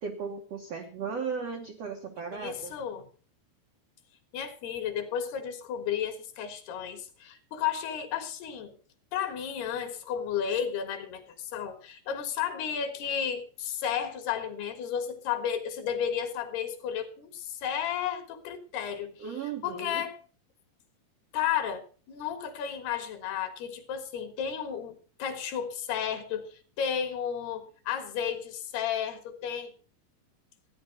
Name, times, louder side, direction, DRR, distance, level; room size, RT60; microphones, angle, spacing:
voice 1, 0.0-2.8 19.2-20.1, right 6 dB, 80° right, 1.4 m, -36 dB
voice 2, 2.4-3.1 4.3-8.7 9.1-19.2 19.6-20.2 21.3-29.7, left 8 dB, 70° left, 3.4 m, -33 dB
14.0 x 10.0 x 5.2 m
omnidirectional pair, 4.9 m